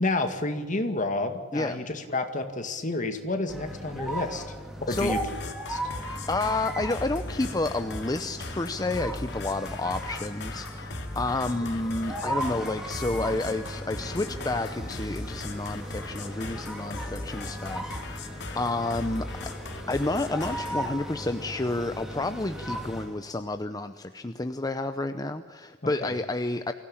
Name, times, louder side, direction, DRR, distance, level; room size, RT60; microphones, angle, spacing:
voice 1, 0.0-4.4 4.9-5.2 5.7-5.8 25.8-26.1, left 2 dB, 40° left, 7 dB, 2.1 m, -30 dB
voice 2, 1.5-1.9 4.9-5.1 6.3-19.5 19.9-26.7, left 2 dB, 20° left, 9 dB, 0.7 m, -30 dB
sound 1, 3.5-23.2, equal, ahead, 2.7 m, -37 dB
sound 2, 4.9-20.9, left 2 dB, 65° left, 2.1 m, -39 dB
23.5 x 16.5 x 8.8 m, 1.5 s
head